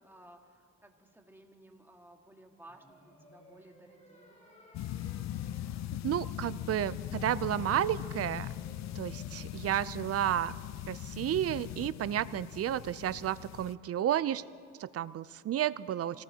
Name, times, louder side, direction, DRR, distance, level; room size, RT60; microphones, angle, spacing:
voice 1, 0.0-4.3, right 1 dB, 5° right, 2 dB, 1.8 m, -57 dB
sound 1, 2.6-9.8, equal, 25° left, 5.3 m, -58 dB
sound 2, 4.7-13.7, left 12 dB, 65° left, 0.5 m, -40 dB
voice 2, 6.0-8.5 9.0-10.5 10.9-14.4 14.8-16.2, right 11 dB, 50° right, 17 dB, 0.5 m, -32 dB
25.5 x 19.0 x 2.9 m, 2.4 s
cardioid pair, 90°, 30 cm